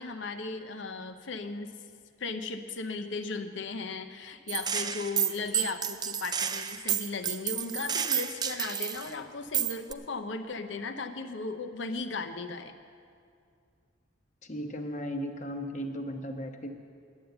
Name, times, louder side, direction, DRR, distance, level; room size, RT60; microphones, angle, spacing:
voice 1, 0.0-1.7 2.2-12.7, left 3 dB, 65° left, 7 dB, 0.7 m, -36 dB
Gunshot gunfire, 4.5-9.1 9.5-9.9, right 8 dB, 20° right, 0.3 m, -30 dB
voice 2, 14.4-16.7, equal, 40° left, 4 dB, 1.0 m, -36 dB
10.5 x 9.2 x 8.0 m, 2.3 s
head